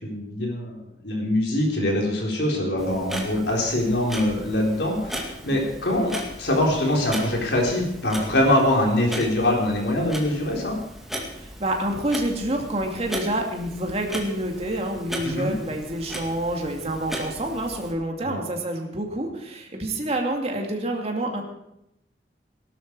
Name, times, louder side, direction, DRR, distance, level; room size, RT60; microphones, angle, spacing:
voice 1, 0.0-10.8 15.2-15.5 18.2-18.4, left 1 dB, 75° left, 0 dB, 4.2 m, -23 dB
Clock, 2.8-17.9, equal, ahead, 2.2 m, -37 dB
voice 2, 11.6-21.4, right 1 dB, 35° right, 2 dB, 2.6 m, -27 dB
18.0 x 12.0 x 4.8 m, 0.82 s
head